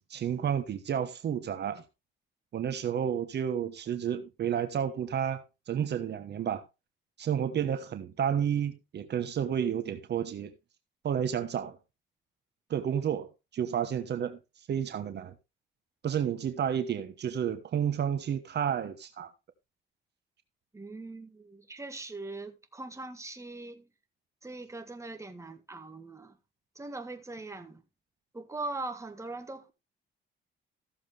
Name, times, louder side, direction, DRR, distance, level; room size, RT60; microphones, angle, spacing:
voice 1, 0.0-1.8 2.5-6.6 7.2-10.5 11.0-11.8 12.7-14.4 14.7-15.3 16.0-19.3, right 8 dB, 60° right, 1.2 m, -31 dB
voice 2, 20.7-23.9 24.4-26.4 26.8-27.8 28.3-29.7, right 2 dB, 15° right, 1.9 m, -41 dB
14.5 x 7.3 x 3.4 m
cardioid pair, 90°, 20 cm